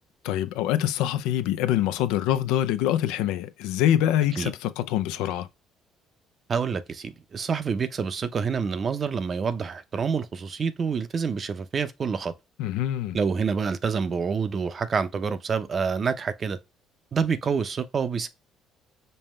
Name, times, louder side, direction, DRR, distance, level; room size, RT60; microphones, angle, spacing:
voice 1, 0.2-5.5 12.6-13.2, left 11 dB, 85° left, 0.5 m, -25 dB
voice 2, 6.5-12.3 13.1-16.6 17.1-18.3, right 5 dB, 40° right, 0.6 m, -27 dB
5.4 x 2.2 x 3.1 m
supercardioid pair, 85°, 0 cm